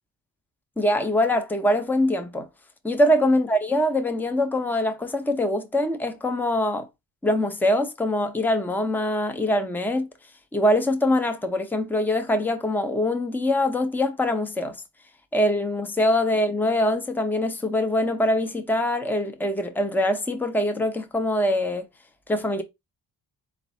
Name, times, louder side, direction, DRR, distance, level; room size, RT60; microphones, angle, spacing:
voice 1, 0.8-2.5 2.8-6.9 7.2-10.1 10.5-14.8 15.3-21.9 22.3-22.6, left 1 dB, 5° left, 0.7 m, -23 dB
3.9 x 2.6 x 4.3 m
cardioid pair, 80°, 44 cm